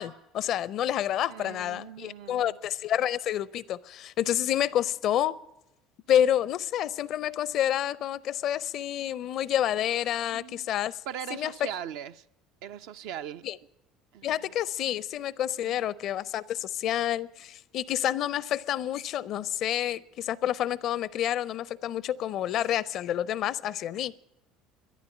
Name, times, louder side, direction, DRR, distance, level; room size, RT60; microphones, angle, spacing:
voice 1, 0.0-5.4 6.1-11.0 11.3-11.7 13.4-13.6 14.2-24.2, left 11 dB, 50° left, 0.5 m, -29 dB
voice 2, 1.3-2.6 10.3-10.7 11.1-12.3 12.6-13.5 14.1-14.5 15.6-15.8, right 9 dB, 65° right, 0.5 m, -40 dB
13.5 x 11.0 x 8.1 m
figure-of-eight pair, 65°, 0 cm